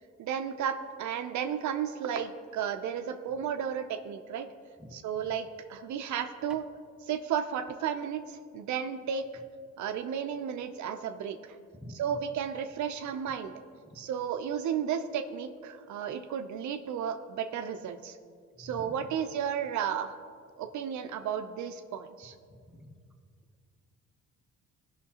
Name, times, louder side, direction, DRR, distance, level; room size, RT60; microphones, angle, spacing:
voice 1, 0.2-4.5 4.9-6.6 7.1-9.3 9.8-11.4 12.0-13.6 14.0-18.1 18.6-20.1 20.6-22.3, right 8 dB, 70° right, 7 dB, 0.6 m, -33 dB
voice 2, 4.8-5.3 11.8-12.0 14.0-14.1 18.5-19.1 22.5-23.0, left 1 dB, 5° right, 1 dB, 1.0 m, -48 dB
15.5 x 5.7 x 2.9 m, 2.1 s
cardioid pair, 90°, 30 cm